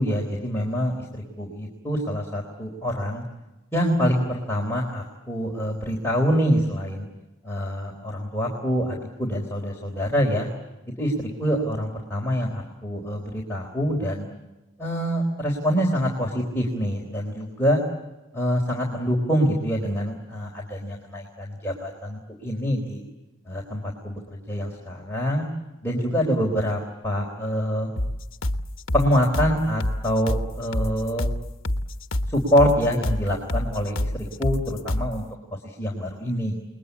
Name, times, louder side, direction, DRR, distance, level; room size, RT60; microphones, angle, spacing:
voice 1, 0.0-3.2 3.7-7.1 7.4-10.5 11.0-14.3 14.8-17.8 18.3-23.0 23.5-25.4 25.8-27.9 28.9-31.3 32.3-35.2 35.6-36.6, equal, 10° left, -2 dB, 3.9 m, -25 dB
sound 1, 28.0-35.2, left 1 dB, 70° left, 1.4 m, -27 dB
29.5 x 21.5 x 8.4 m, 1.0 s
head